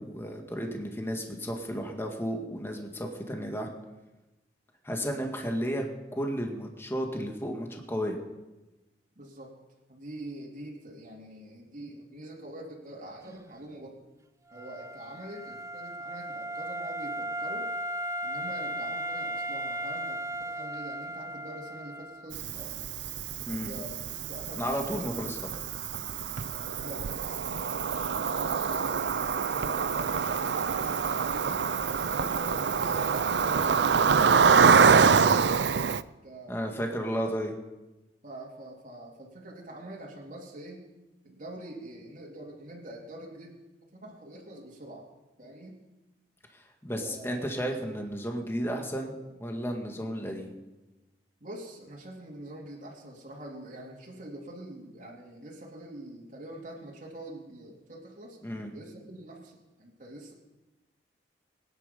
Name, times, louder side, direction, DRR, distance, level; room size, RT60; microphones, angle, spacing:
voice 1, 0.0-3.7 4.8-5.9 6.2-8.2 23.5-23.7 24.6-25.4 34.7-35.2 36.5-37.5 46.5-50.6 58.4-58.7, equal, 15° left, 2 dB, 1.9 m, -33 dB
voice 2, 9.2-9.5 9.9-14.0 14.5-17.7 18.2-22.9 23.6-25.1 26.5-31.6 31.9-34.7 36.2-36.8 38.2-40.9 41.2-43.6 43.9-45.0 45.4-45.8 47.0-47.4 51.4-60.3, right 1 dB, 45° right, -2 dB, 3.1 m, -45 dB
Wind instrument woodwind instrument, 14.5-22.3, right 1 dB, 15° right, 0.5 m, -36 dB
Cricket, 22.3-36.0, right 6 dB, 70° right, 0.5 m, -25 dB
22.5 x 10.0 x 5.3 m, 1.1 s
head